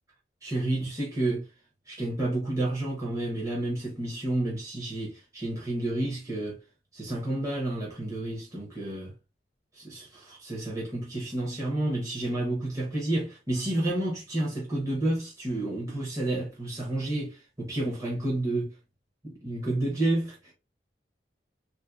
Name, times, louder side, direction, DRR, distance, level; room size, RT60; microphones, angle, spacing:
voice 1, 0.4-1.5 1.9-6.6 6.9-9.1 9.7-18.7 19.2-20.5, right 1 dB, 20° right, 0.8 m, -30 dB
3.1 x 2.6 x 2.3 m
head